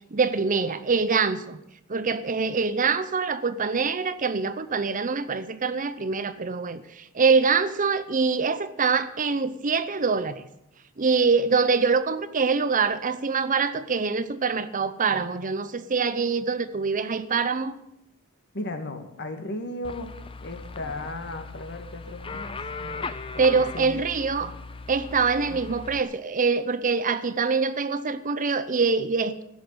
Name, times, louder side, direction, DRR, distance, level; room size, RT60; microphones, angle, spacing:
voice 1, 0.1-1.6 1.9-10.5 11.0-17.8 23.4-24.5 24.9-29.4, right 5 dB, 40° right, 0.7 m, -24 dB
voice 2, 18.5-20.1 20.4-23.1 23.3-23.4 23.7-24.0 24.4-24.6 25.5-25.6, left 2 dB, 55° left, 1.9 m, -36 dB
sound 1, 19.8-26.0, left 4 dB, 25° left, 0.6 m, -38 dB
15.5 x 6.6 x 9.5 m
head